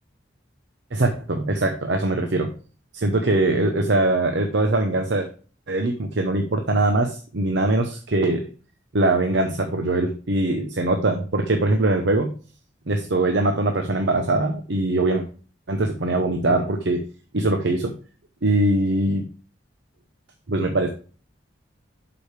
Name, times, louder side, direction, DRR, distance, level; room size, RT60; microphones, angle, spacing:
voice 1, 0.9-2.5 2.9-5.3 5.7-8.4 8.9-12.3 12.9-15.3 15.7-17.1 17.3-17.9 18.4-19.2 20.5-20.9, right 2 dB, 65° right, 4 dB, 0.9 m, -22 dB
11.5 x 5.0 x 3.3 m, 0.38 s
head